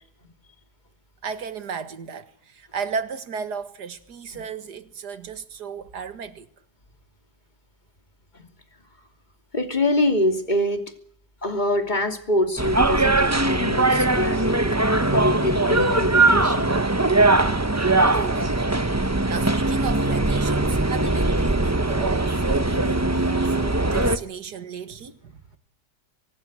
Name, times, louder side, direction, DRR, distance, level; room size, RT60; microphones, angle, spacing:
voice 1, 1.2-6.5 18.1-18.7 19.0-25.6, right 6 dB, 75° right, 2.2 m, -34 dB
voice 2, 9.5-10.8 11.4-14.8 15.1-16.7 23.5-23.6, left 1 dB, 25° left, 3.1 m, -25 dB
sound 1, 12.6-24.2, right 2 dB, 15° right, 0.6 m, -21 dB
25.0 x 18.0 x 8.1 m
omnidirectional pair, 1.8 m